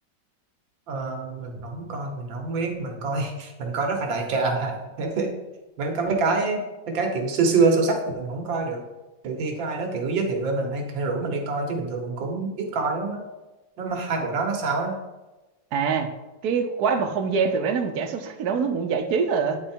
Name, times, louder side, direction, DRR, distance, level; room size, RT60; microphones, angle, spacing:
voice 1, 0.9-5.3 5.8-8.8 9.2-13.2 13.8-15.0, right 3 dB, 85° right, 3 dB, 1.9 m, -26 dB
voice 2, 15.7-16.1 16.4-19.6, right 5 dB, 65° right, 7 dB, 1.2 m, -24 dB
9.7 x 4.3 x 4.4 m, 1.1 s
omnidirectional pair, 2.0 m